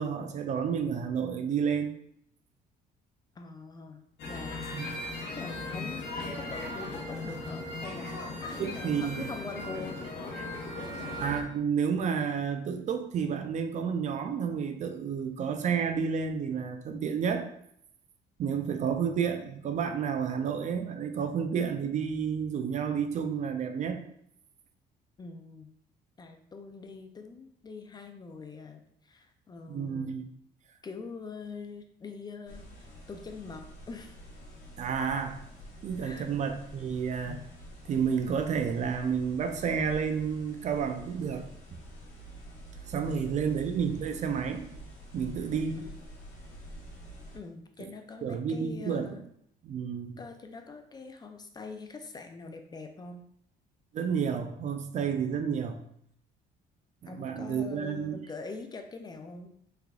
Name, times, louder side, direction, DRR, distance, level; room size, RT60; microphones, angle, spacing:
voice 1, 0.0-1.9 4.7-4.9 8.6-9.2 10.4-10.5 11.2-17.5 18.4-24.0 29.7-30.3 34.8-35.4 35.8-37.4 37.8-41.5 42.9-44.7 45.1-45.8 47.8-47.9 48.2-49.1 49.6-50.2 53.9-55.8 57.0-58.2, right 7 dB, 45° right, 6 dB, 0.4 m, -30 dB
voice 2, 3.4-4.9 5.3-10.0 25.2-25.7 26.2-30.1 30.8-34.2 36.0-36.3 43.1-43.5 45.8-45.9 47.3-49.2 50.2-53.2 57.0-59.5, left 4 dB, 25° left, 5 dB, 0.4 m, -44 dB
sound 1, 4.2-11.4, left 2 dB, 80° left, 0.8 m, -37 dB
sound 2, 32.5-47.4, right 1 dB, 50° left, 1.1 m, -47 dB
3.5 x 3.4 x 2.3 m, 0.70 s
cardioid pair, 110°, 17 cm